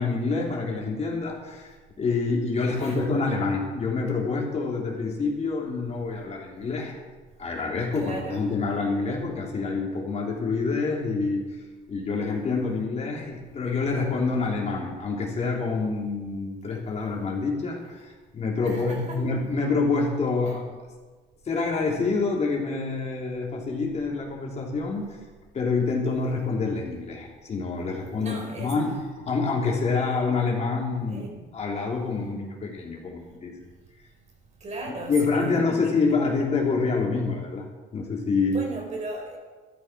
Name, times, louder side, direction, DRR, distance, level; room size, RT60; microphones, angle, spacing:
voice 1, 0.0-7.0 7.4-11.4 11.9-20.6 21.4-25.2 25.5-29.0 29.2-31.3 31.5-33.5 35.1-38.6, left 4 dB, 40° left, -1 dB, 3.6 m, -27 dB
voice 2, 2.7-3.1 7.9-8.5 18.6-19.2 20.4-20.6 28.2-28.8 31.1-31.4 34.6-35.6 38.5-39.4, right 2 dB, 40° right, 1 dB, 4.4 m, -36 dB
13.0 x 12.0 x 6.2 m, 1.3 s
cardioid pair, 110°, 17 cm